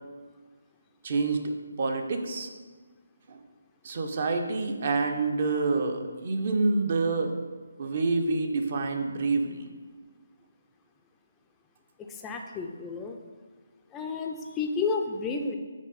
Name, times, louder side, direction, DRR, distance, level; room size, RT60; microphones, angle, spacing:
voice 1, 1.0-2.5 3.3-3.4 3.8-7.3 7.8-9.7, right 3 dB, 45° right, 5 dB, 0.6 m, -27 dB
voice 2, 12.1-13.2 13.9-15.5, left 4 dB, 15° left, 3 dB, 0.4 m, -31 dB
6.1 x 3.7 x 4.1 m, 1.4 s
figure-of-eight pair, 150°, 0 cm